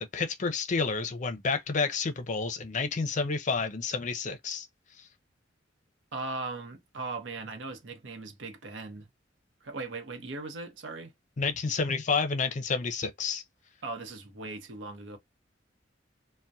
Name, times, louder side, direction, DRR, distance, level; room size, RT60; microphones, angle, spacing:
voice 1, 0.1-4.7 5.0-5.1 11.4-13.4, left 4 dB, 40° left, 0.5 m, -30 dB
voice 2, 6.1-9.1 9.6-11.1 13.8-15.2, right 3 dB, 85° right, 0.8 m, -38 dB
2.7 x 2.1 x 2.2 m
head